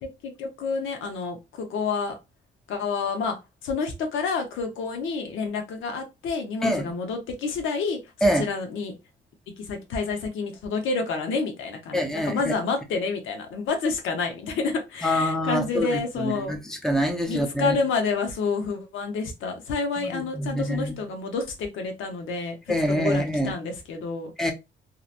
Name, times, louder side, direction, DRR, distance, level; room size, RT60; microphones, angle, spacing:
voice 1, 0.0-2.2 2.7-3.4 3.6-8.9 9.6-16.6 17.3-22.5 22.9-24.3, left 4 dB, 90° left, 0.8 m, -29 dB
voice 2, 6.6-6.9 8.2-8.5 11.9-12.5 15.0-17.8 20.0-21.1 22.7-23.5 24.4-24.5, equal, 5° left, 0.6 m, -25 dB
2.9 x 2.1 x 2.5 m
cardioid pair, 120°, 20 cm